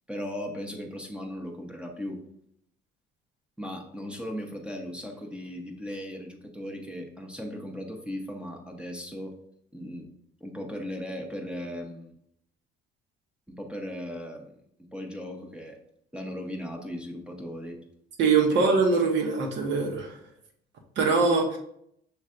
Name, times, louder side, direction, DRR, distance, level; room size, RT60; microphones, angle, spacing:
voice 1, 0.1-2.2 3.6-9.3 9.7-10.1 10.4-12.1 13.5-14.6 14.9-15.8 16.1-17.8 18.5-18.7, equal, 5° right, 2 dB, 0.8 m, -37 dB
voice 2, 18.2-20.2 21.0-21.6, right 4 dB, 70° right, 2 dB, 1.1 m, -23 dB
6.3 x 3.2 x 2.5 m, 0.73 s
supercardioid pair, 85°, 20 cm